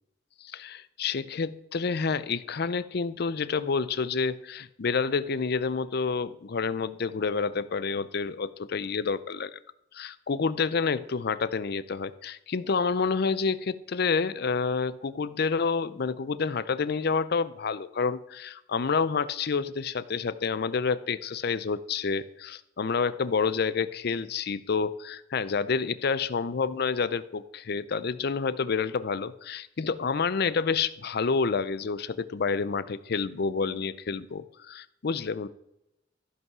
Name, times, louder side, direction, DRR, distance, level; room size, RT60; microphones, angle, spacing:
voice 1, 0.4-9.5 9.9-35.5, left 5 dB, 55° left, 16 dB, 0.5 m, -29 dB
14.0 x 5.5 x 6.0 m, 0.84 s
head